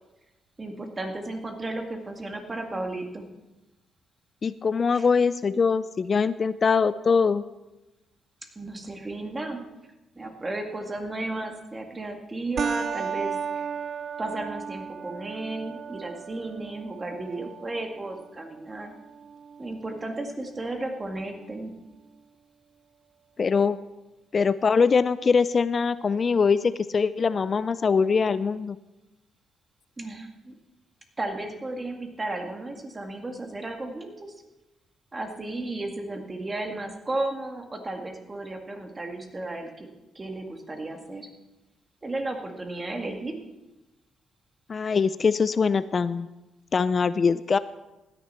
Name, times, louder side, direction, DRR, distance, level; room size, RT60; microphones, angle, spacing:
voice 1, 0.6-3.3 4.9-5.1 8.6-9.6 10.2-13.7 14.2-19.0 19.6-21.7 30.0-30.5 31.2-34.3 35.1-39.9 40.2-41.3 42.0-43.4, right 2 dB, 25° right, 4 dB, 2.1 m, -34 dB
voice 2, 4.4-7.4 23.4-23.8 24.3-26.6 26.9-28.8 44.7-46.3 46.7-47.6, left 5 dB, 40° left, 15 dB, 0.4 m, -22 dB
sound 1, 12.6-21.5, right 6 dB, 55° right, 0.3 m, -36 dB
16.0 x 10.0 x 4.4 m, 1.0 s
cardioid pair, 85°, 0 cm